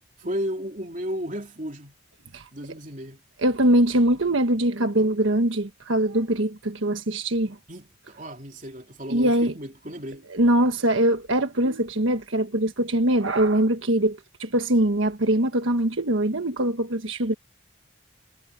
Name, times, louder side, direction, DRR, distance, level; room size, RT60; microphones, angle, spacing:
voice 1, 0.2-1.9 2.5-3.2 7.7-10.2, equal, 40° right, 3.2 m, -34 dB
voice 2, 3.4-7.6 9.1-9.5 10.3-17.3, right 1 dB, 80° right, 1.4 m, -22 dB
head